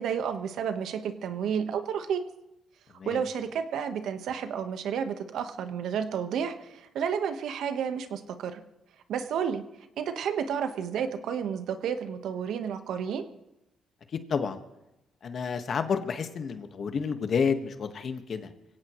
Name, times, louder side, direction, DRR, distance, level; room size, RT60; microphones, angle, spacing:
voice 1, 0.0-2.2 3.0-8.6 9.1-9.6 10.0-13.2, right 7 dB, 75° right, 8 dB, 1.3 m, -31 dB
voice 2, 15.2-18.5, left 6 dB, 55° left, 7 dB, 1.6 m, -30 dB
23.5 x 17.0 x 3.2 m, 0.92 s
cardioid pair, 90°, 0 cm